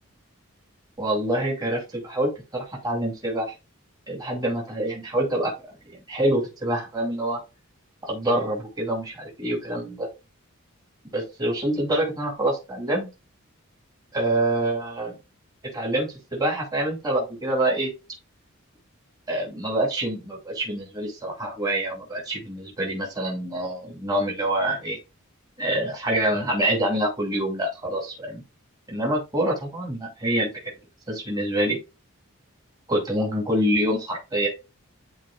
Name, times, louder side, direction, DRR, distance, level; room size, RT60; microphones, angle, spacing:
voice 1, 1.0-3.5 4.1-5.5 5.9-7.4 8.0-10.1 11.1-13.1 14.1-15.2 15.7-17.9 19.3-25.0 25.6-28.4 28.9-30.5 31.1-31.8 32.9-34.5, right 1 dB, 20° right, -2 dB, 2.7 m, -26 dB
11.5 x 4.1 x 2.5 m, 0.27 s
head